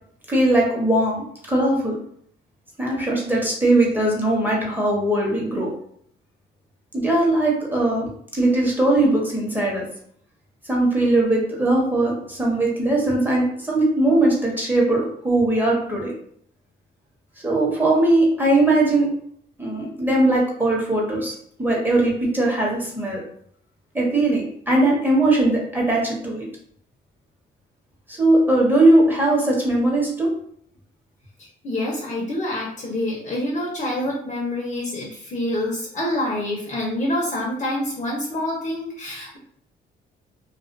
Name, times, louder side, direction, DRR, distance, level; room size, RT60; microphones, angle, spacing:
voice 1, 0.3-2.0 2.8-5.7 6.9-9.9 10.7-16.1 17.4-19.1 19.6-21.3 21.6-23.2 23.9-26.5 28.1-30.3, right 2 dB, 10° right, -3 dB, 1.0 m, -20 dB
voice 2, 31.4-39.4, left 1 dB, 35° left, -1 dB, 0.7 m, -27 dB
2.4 x 2.3 x 2.5 m, 0.64 s
cardioid pair, 90°, 20 cm